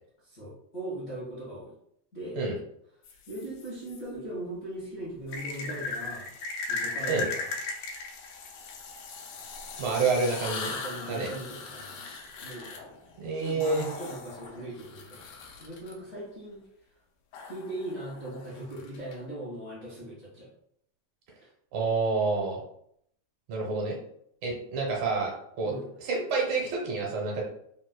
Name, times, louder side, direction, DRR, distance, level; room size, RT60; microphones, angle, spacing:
voice 1, 0.2-1.7 2.1-2.4 3.3-6.4 6.7-7.5 10.5-12.1 12.4-12.9 13.4-15.2 15.6-16.6 17.4-20.5 25.6-25.9, right 1 dB, 60° left, -9 dB, 0.9 m, -39 dB
sound 1, 3.0-4.0 5.3-15.9 17.3-19.1, left 3 dB, 85° left, 2.0 m, -38 dB
voice 2, 9.8-10.7 11.1-11.3 13.2-13.9 21.7-22.6 23.5-24.0 24.4-25.3 25.6-25.7 26.0-27.4, right 3 dB, 80° right, -2 dB, 2.1 m, -28 dB
4.8 x 2.0 x 2.2 m, 0.71 s
omnidirectional pair, 3.3 m